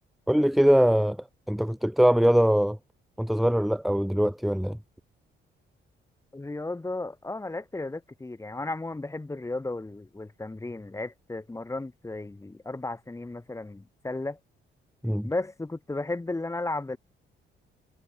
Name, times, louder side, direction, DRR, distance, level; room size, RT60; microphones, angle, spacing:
voice 1, 0.3-1.2 1.5-2.8 3.2-4.8 15.0-15.3, equal, ahead, 0.8 m, -22 dB
voice 2, 6.3-14.4 15.2-17.0, left 2 dB, 15° left, 2.0 m, -34 dB
cardioid pair, 90°, 20 cm